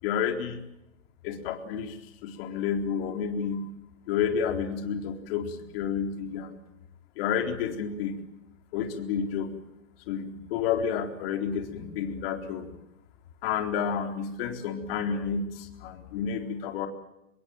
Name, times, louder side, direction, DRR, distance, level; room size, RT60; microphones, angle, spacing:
voice 1, 0.0-0.6 1.2-3.7 4.1-6.6 7.2-8.2 8.7-9.5 10.1-12.7 13.4-16.9, left 7 dB, 45° left, 6 dB, 4.0 m, -30 dB
26.0 x 21.5 x 7.8 m, 0.85 s
hypercardioid pair, 150°, 41 cm